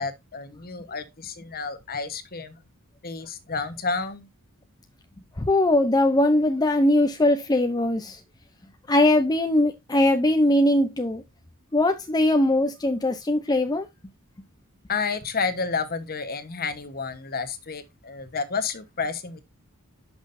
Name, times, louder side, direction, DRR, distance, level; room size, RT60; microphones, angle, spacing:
voice 1, 0.0-2.6 3.0-4.3 14.9-19.4, left 4 dB, 45° left, 1.1 m, -30 dB
voice 2, 5.4-8.2 8.9-11.2 11.7-13.9, left 1 dB, 20° left, 0.6 m, -21 dB
10.5 x 6.1 x 2.6 m
head